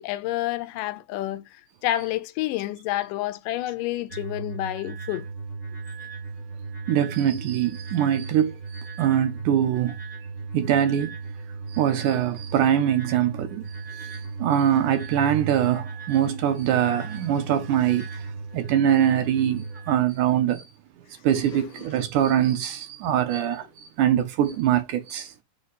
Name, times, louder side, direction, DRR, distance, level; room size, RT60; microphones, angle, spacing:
voice 1, 0.0-5.3 21.5-21.9, left 15 dB, 80° left, 2.2 m, -29 dB
sound 1, 4.1-20.0, right 4 dB, 40° left, 1.0 m, -36 dB
voice 2, 6.9-10.0 10.5-11.1 11.7-13.6 14.0-14.1 14.4-18.3 18.5-20.6 21.2-25.3, right 10 dB, 75° right, 2.2 m, -23 dB
6.5 x 2.8 x 5.5 m
omnidirectional pair, 4.0 m